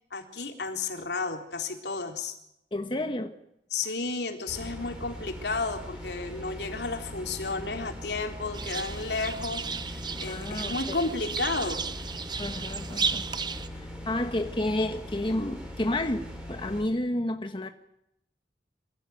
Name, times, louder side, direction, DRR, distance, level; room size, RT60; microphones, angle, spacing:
voice 1, 0.1-2.4 3.7-11.8, left 3 dB, 75° left, 4 dB, 3.8 m, -32 dB
voice 2, 2.7-3.3 10.3-11.1 12.4-13.2 13.8-17.7, left 1 dB, 30° left, 6 dB, 1.3 m, -31 dB
sound 1, 4.5-16.8, left 1 dB, 5° right, 7.2 m, -41 dB
sound 2, 8.5-13.7, right 5 dB, 25° right, 1.0 m, -34 dB
26.0 x 16.0 x 9.5 m, 0.79 s
head